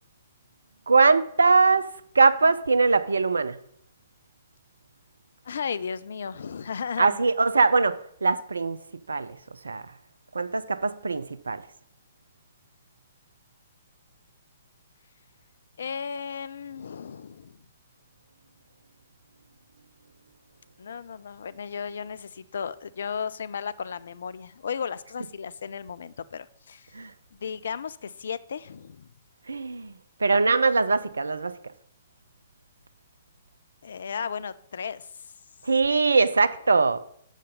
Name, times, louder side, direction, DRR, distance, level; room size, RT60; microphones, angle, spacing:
voice 1, 0.9-1.9 2.2-3.6 7.0-8.8 9.1-9.4 9.6-9.8 10.3-11.6 26.9-27.1 29.5-29.9 30.2-31.5 35.6-37.0, right 4 dB, 70° right, 0.4 m, -21 dB
voice 2, 5.5-7.2 15.8-17.6 20.8-26.9 27.3-29.1 33.8-35.1, left 6 dB, 60° left, 0.3 m, -35 dB
6.7 x 5.1 x 5.1 m
figure-of-eight pair, 120°, 0 cm